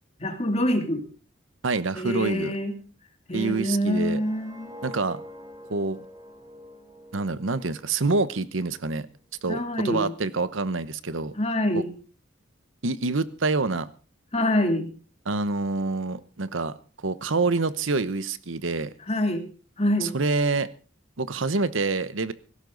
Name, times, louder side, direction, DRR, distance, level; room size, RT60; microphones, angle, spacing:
voice 1, 0.2-1.0 1.9-2.7 3.3-4.7 9.5-10.1 11.3-11.9 14.3-14.9 19.1-19.4 19.8-20.1, left 1 dB, 30° left, 4 dB, 2.7 m, -25 dB
voice 2, 1.6-2.5 3.3-4.2 4.8-5.2 5.7-6.0 7.1-9.1 9.4-11.3 11.7-11.8 12.8-13.9 15.3-16.8 17.0-18.9 20.0-20.7 21.2-22.3, right 3 dB, 80° right, 14 dB, 0.9 m, -26 dB
sound 1, 3.7-8.8 9.1-9.4, left 1 dB, 20° right, 2.3 m, -46 dB
18.0 x 16.0 x 4.0 m, 0.36 s
head